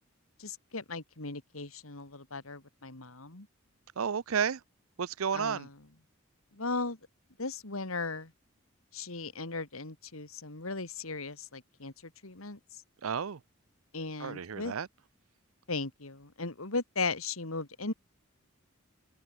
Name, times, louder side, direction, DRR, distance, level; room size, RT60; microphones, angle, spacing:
voice 1, 0.4-3.5 5.3-5.7 6.6-7.0 7.4-8.3 8.9-11.9 12.2-12.6 13.9-14.7 15.7-17.9, left 3 dB, 85° left, 2.7 m, -37 dB
voice 2, 4.0-4.6 5.0-5.7 13.0-13.4 14.2-14.9, right 7 dB, 85° right, 0.6 m, -32 dB
head